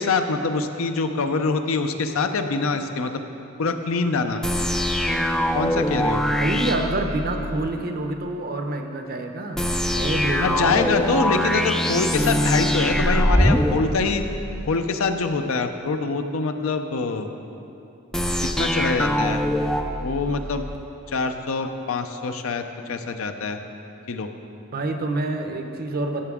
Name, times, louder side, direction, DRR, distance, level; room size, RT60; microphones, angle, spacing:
voice 1, 0.0-3.2 3.6-4.4 5.5-6.2 10.4-14.2 14.7-17.3 18.6-19.4 20.0-20.6 21.1-23.6 24.1-24.3, left 4 dB, 75° left, 7 dB, 0.6 m, -24 dB
sound 1, 4.4-7.7 9.6-14.8 18.1-20.8, equal, 5° left, 0.3 m, -23 dB
voice 2, 6.1-9.6 9.9-11.5 24.7-26.3, right 2 dB, 45° right, 5 dB, 0.7 m, -28 dB
14.0 x 6.9 x 3.6 m, 2.8 s
head